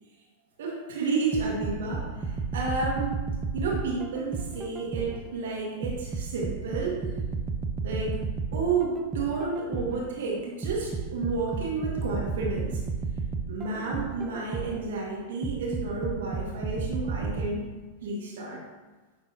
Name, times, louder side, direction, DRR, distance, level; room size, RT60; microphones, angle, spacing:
voice 1, 0.6-3.2 3.5-7.0 7.8-8.2 8.5-12.8 13.5-17.7 18.0-18.6, right 3 dB, 60° right, -2 dB, 1.6 m, -31 dB
sound 1, 1.3-5.3 5.8-10.1 10.6-14.9 15.4-17.5, right 5 dB, 15° right, 0.7 m, -32 dB
10.0 x 6.2 x 2.7 m, 1.3 s
figure-of-eight pair, 90°, 0 cm